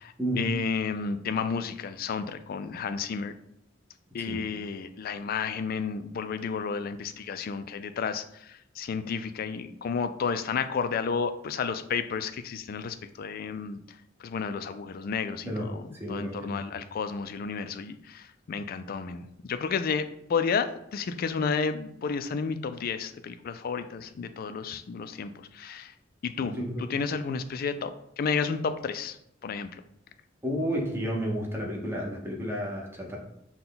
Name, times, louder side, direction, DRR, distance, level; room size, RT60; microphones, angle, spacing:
voice 1, 0.0-3.3 4.1-13.8 14.2-15.8 16.1-25.9 26.2-29.2 29.4-29.7, left 5 dB, 50° left, 10 dB, 0.3 m, -32 dB
voice 2, 15.5-16.6 26.4-26.9 30.4-33.2, equal, 15° right, -1 dB, 0.9 m, -32 dB
5.8 x 2.2 x 3.9 m, 0.78 s
head